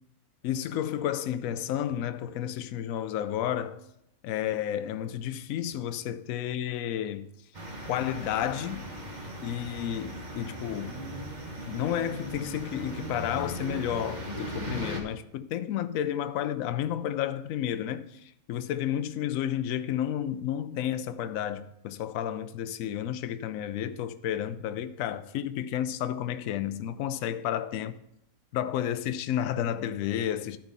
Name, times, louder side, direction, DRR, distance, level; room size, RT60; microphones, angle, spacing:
voice 1, 0.4-3.8 4.2-7.3 7.9-8.8 9.4-11.0 11.7-27.9 28.5-30.6, left 10 dB, 75° left, 1.0 m, -31 dB
sound 1, 7.5-15.0, right 1 dB, 30° right, 1.3 m, -38 dB
11.5 x 4.5 x 5.5 m
omnidirectional pair, 1.5 m